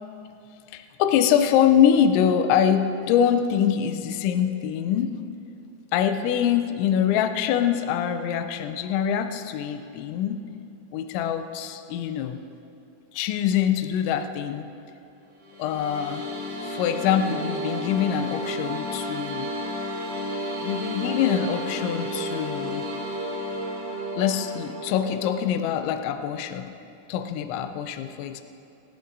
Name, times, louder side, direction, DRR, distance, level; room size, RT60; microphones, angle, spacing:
voice 1, 0.7-5.2 5.9-10.4 10.9-12.4 13.1-14.7 15.6-16.3 16.6-19.5 20.6-22.9 24.2-26.7 27.1-28.4, left 9 dB, 80° left, 7 dB, 2.8 m, -24 dB
sound 1, 15.4-25.5, equal, 15° right, 3.2 m, -32 dB
27.0 x 11.5 x 2.7 m, 2.6 s
omnidirectional pair, 5.6 m